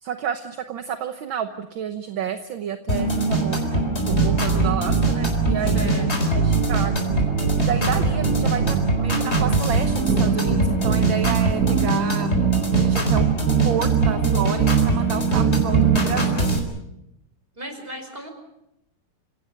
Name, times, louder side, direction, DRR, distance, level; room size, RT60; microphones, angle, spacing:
voice 1, 0.0-7.1 7.6-12.4 12.7-13.3 13.6-16.5, right 8 dB, 65° right, 8 dB, 1.8 m, -30 dB
sound 1, 2.9-16.6, right 2 dB, 30° left, 4.4 m, -23 dB
sound 2, 4.1-5.9 6.4-9.0 9.4-11.9 12.4-14.9 15.4-16.0, right 8 dB, 50° right, 1.3 m, -22 dB
voice 2, 5.7-6.4 17.5-18.3, equal, 25° right, 5 dB, 5.1 m, -35 dB
29.5 x 17.0 x 6.7 m, 0.85 s
omnidirectional pair, 2.4 m